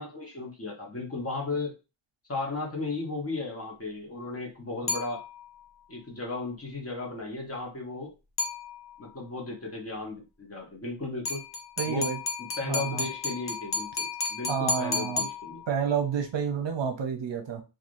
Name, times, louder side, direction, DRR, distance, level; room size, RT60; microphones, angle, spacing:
voice 1, 0.0-1.7 2.3-5.2 5.9-8.1 9.0-11.4 11.9-12.1 12.4-15.6, left 3 dB, 30° left, 0 dB, 1.0 m, -35 dB
sound 1, 4.9-5.7 8.4-9.1 11.3-15.9, left 4 dB, 50° left, 0.7 m, -33 dB
voice 2, 11.8-12.2 12.6-13.1 14.5-15.3 15.7-17.6, right 7 dB, 60° right, 4 dB, 0.7 m, -30 dB
3.2 x 2.5 x 2.5 m, 0.28 s
wide cardioid pair, 120°, 49 cm